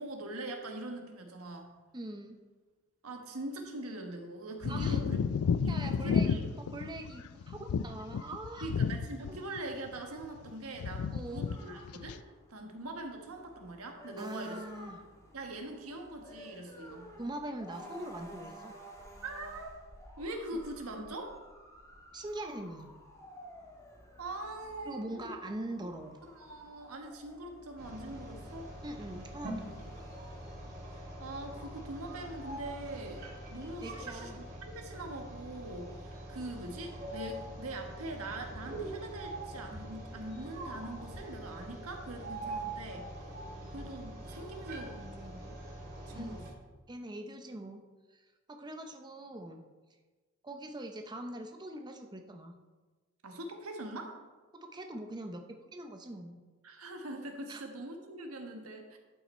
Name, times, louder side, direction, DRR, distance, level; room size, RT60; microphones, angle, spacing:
voice 1, 0.0-1.7 3.0-6.4 8.6-12.2 12.5-14.6 15.3-17.1 19.2-19.8 20.2-21.3 24.2-25.4 26.2-28.7 30.9-43.1 43.7-45.5 46.1-46.5 53.2-54.2 56.6-59.0, right 2 dB, 85° right, 3 dB, 1.3 m, -43 dB
voice 2, 1.9-2.4 4.7-5.0 5.7-8.7 9.3-9.4 11.1-11.5 14.2-15.0 17.2-18.7 22.1-22.9 24.9-26.2 28.8-29.6 33.8-34.4 46.1-46.4 46.9-47.8 48.1-48.2 48.5-49.6 50.4-52.6 54.5-55.5 55.7-56.4 57.5-57.6, right 1 dB, 20° right, 4 dB, 0.6 m, -42 dB
sound 1, 4.6-9.6 9.9-10.5 10.8-11.6 11.8-12.2, left 6 dB, 90° left, 0.4 m, -32 dB
sound 2, 11.5-30.8, equal, 15° left, 1.3 m, -53 dB
sound 3, 27.8-46.5, right 1 dB, 50° right, 2.4 m, -44 dB
11.5 x 5.8 x 4.3 m, 1.3 s
head